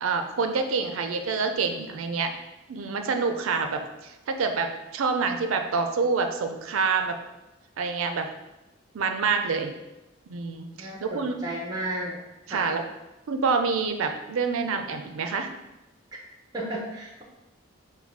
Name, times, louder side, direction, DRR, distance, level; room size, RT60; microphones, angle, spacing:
voice 1, 0.0-2.4 2.7-7.1 7.8-8.3 8.9-9.7 10.3-11.3 12.5-12.8 13.3-15.5, right 4 dB, 85° right, 6 dB, 0.4 m, -27 dB
voice 2, 10.8-12.2 12.5-12.7 16.5-17.2, right 1 dB, 20° right, -2 dB, 0.5 m, -33 dB
4.1 x 2.2 x 4.5 m, 0.97 s
head